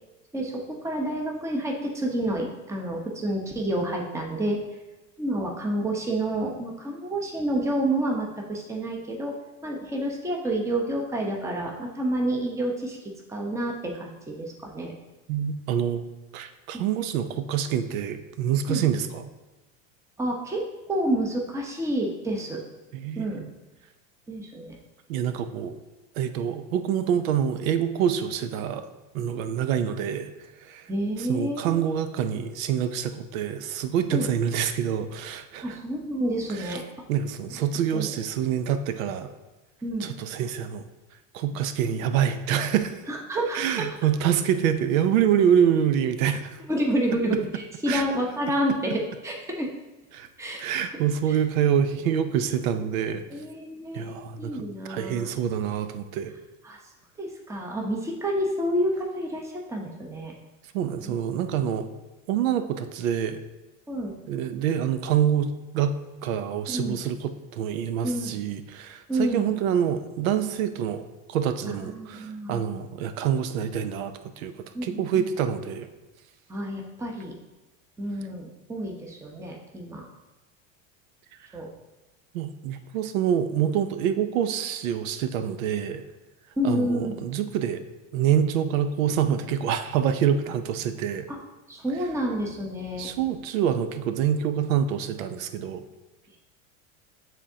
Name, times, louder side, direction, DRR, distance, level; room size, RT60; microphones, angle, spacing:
voice 1, 0.3-4.6 5.2-9.3 9.6-13.0 13.3-14.9 16.7-16.8 18.7-18.8 20.2-22.6 23.2-23.4 24.3-24.7 30.9-31.8 34.1-34.3 35.6-36.8 37.9-38.1 39.8-40.1 43.1-43.8 46.7-49.7 50.4-50.6 50.9-51.0 51.3-51.4 53.3-55.3 56.6-56.8 57.2-60.3 61.0-61.1 63.9-64.1 66.7-67.0 68.0-68.4 69.1-69.5 71.7-72.7 74.7-75.2 76.5-77.3 78.0-80.1 81.5-81.7 86.6-87.2 91.3-91.4 91.7-93.1, right 1 dB, 5° right, 0 dB, 0.9 m, -29 dB
voice 2, 15.3-16.0 16.3-19.2 22.9-23.5 25.1-25.7 26.2-28.9 29.1-30.3 30.6-30.9 31.2-35.8 36.5-36.8 37.1-39.3 40.0-40.9 41.3-43.0 43.5-46.6 47.9-48.0 50.1-50.3 50.6-53.3 53.9-56.3 60.7-61.9 62.3-63.4 64.3-65.9 66.2-74.5 74.8-75.9 82.3-86.0 86.6-87.8 88.1-91.3 93.0-95.8, right 9 dB, 85° right, 10 dB, 0.6 m, -26 dB
9.7 x 3.6 x 2.8 m, 1.1 s
supercardioid pair, 110°, 39 cm